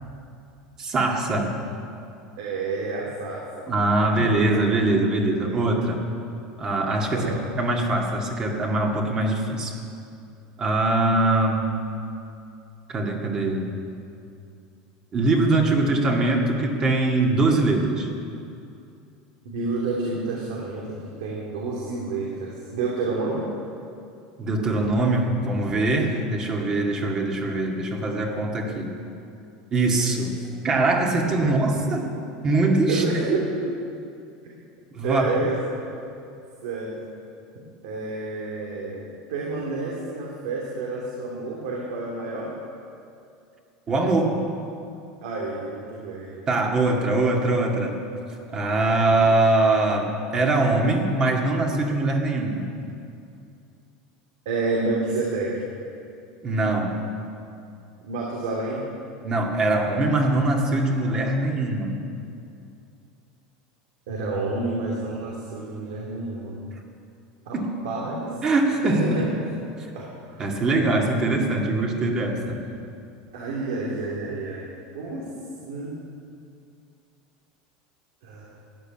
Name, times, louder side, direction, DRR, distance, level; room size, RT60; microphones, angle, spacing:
voice 1, 0.8-1.5 3.7-6.0 6.6-9.7 10.6-11.8 12.9-13.7 15.1-18.1 24.4-28.9 29.7-30.3 30.6-32.1 32.4-33.4 34.9-35.3 43.9-44.4 46.5-48.0 48.5-52.7 56.4-57.0 59.2-62.0 67.5-67.7 68.4-69.3 70.4-72.6, right 2 dB, 25° right, 1 dB, 2.1 m, -22 dB
voice 2, 2.4-3.7 5.5-5.6 7.1-7.4 19.4-23.4 30.0-30.1 31.4-31.6 32.9-33.8 35.0-35.8 36.6-37.0 37.8-42.5 45.2-46.7 54.4-55.6 58.0-58.8 64.1-66.6 67.5-68.4 68.8-69.4 69.9-70.4 73.3-74.7 74.9-75.3 75.6-75.9 78.2-78.4, right 3 dB, 80° right, -3 dB, 3.0 m, -29 dB
14.5 x 10.5 x 8.9 m, 2.6 s
supercardioid pair, 155°, 3 cm